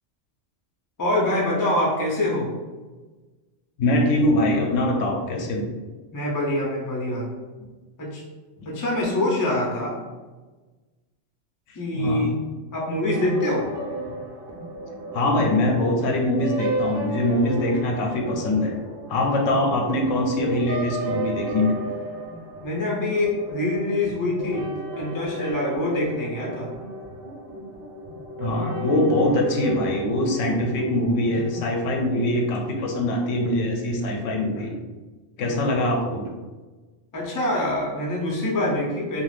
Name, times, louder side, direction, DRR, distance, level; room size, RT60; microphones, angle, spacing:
voice 1, 1.0-2.5 6.1-7.3 8.0-8.2 8.6-10.0 11.7-12.3 12.7-13.7 22.6-26.7 35.7-35.8 37.1-39.2, left 1 dB, 25° left, -4 dB, 0.4 m, -25 dB
voice 2, 3.8-5.7 8.6-8.7 11.7-12.3 14.9-18.7 19.1-21.7 28.4-34.8 35.4-36.2, left 1 dB, 85° left, 1 dB, 0.9 m, -23 dB
sound 1, 13.0-31.7, right 1 dB, 60° right, 0.7 m, -34 dB
2.4 x 2.4 x 3.1 m, 1.3 s
omnidirectional pair, 1.3 m